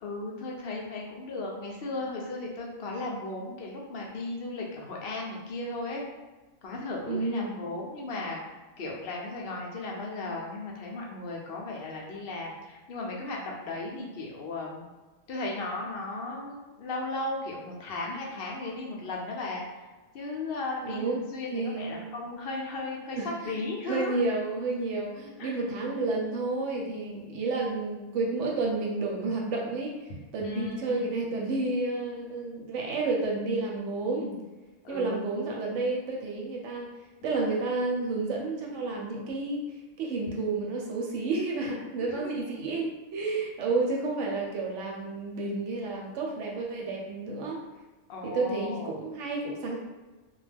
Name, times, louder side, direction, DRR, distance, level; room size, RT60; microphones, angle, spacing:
voice 1, 0.0-6.1 6.6-14.9 15.3-19.9 20.1-24.2 25.4-25.6 30.4-31.1 34.8-35.3 42.0-42.4 48.1-49.0, left 2 dB, 60° left, -2 dB, 0.6 m, -36 dB
voice 2, 7.1-7.6 20.8-21.2 21.5-22.0 23.2-23.6 23.9-29.9 30.3-34.4 34.9-36.9 37.2-39.6 40.0-47.6 48.2-49.8, right 3 dB, 70° right, -1 dB, 0.8 m, -30 dB
2.3 x 2.0 x 3.2 m, 1.2 s
omnidirectional pair, 1.4 m